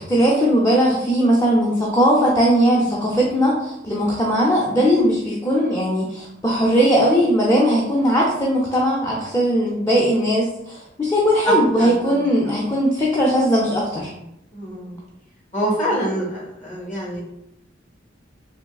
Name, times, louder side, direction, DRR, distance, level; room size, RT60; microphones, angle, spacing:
voice 1, 0.0-14.1, equal, 15° left, -4 dB, 0.5 m, -19 dB
voice 2, 11.5-12.2 14.5-15.0 15.5-17.2, equal, 40° left, -4 dB, 0.9 m, -26 dB
3.5 x 2.7 x 2.3 m, 0.82 s
head